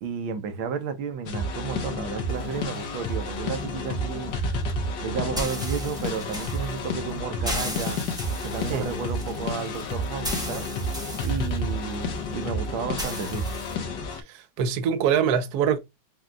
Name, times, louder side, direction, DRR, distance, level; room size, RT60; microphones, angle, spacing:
voice 1, 0.0-4.3 5.0-8.0 8.4-10.7 11.2-13.5, right 6 dB, 80° right, 1.6 m, -32 dB
sound 1, 1.3-14.2, left 1 dB, 65° left, 1.6 m, -30 dB
sound 2, 2.3-13.8, equal, 5° right, 0.7 m, -38 dB
voice 2, 14.3-15.8, right 7 dB, 65° right, 1.1 m, -23 dB
6.2 x 2.8 x 2.2 m
omnidirectional pair, 2.2 m